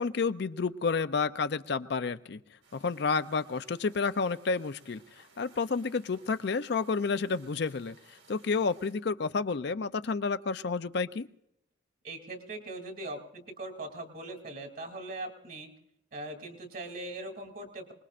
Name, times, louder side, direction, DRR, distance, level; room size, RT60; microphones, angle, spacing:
voice 1, 0.0-2.4 2.7-11.3, left 4 dB, 55° left, 11 dB, 0.5 m, -30 dB
sound 1, 2.6-8.9, right 4 dB, 75° right, 4.4 m, -61 dB
voice 2, 12.0-15.7 16.1-17.9, right 2 dB, 45° right, 5 dB, 2.7 m, -40 dB
25.5 x 20.5 x 2.5 m, 0.78 s
head